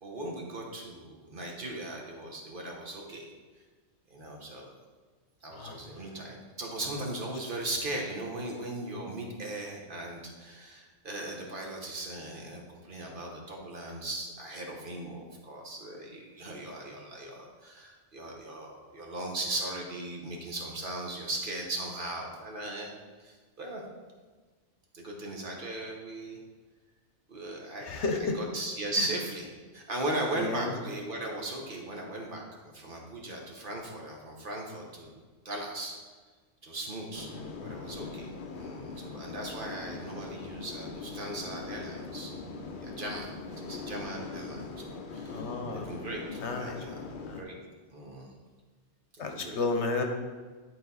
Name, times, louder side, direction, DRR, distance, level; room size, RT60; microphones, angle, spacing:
voice 1, 0.0-3.3 4.1-4.7 5.4-22.9 23.2-23.8 24.9-26.4 27.3-35.1 35.4-36.0 36.6-42.3 42.8-47.6 47.9-48.3 49.1-49.6, right 1 dB, 50° right, 0 dB, 1.2 m, -38 dB
voice 2, 27.9-28.4 30.4-30.7 37.6-37.8 45.3-45.9 46.4-46.8 47.3-47.4 49.2-50.0, left 3 dB, 75° left, 4 dB, 1.2 m, -32 dB
sound 1, 37.1-47.4, left 4 dB, 50° left, 0.7 m, -41 dB
10.5 x 3.9 x 4.0 m, 1.4 s
omnidirectional pair, 1.2 m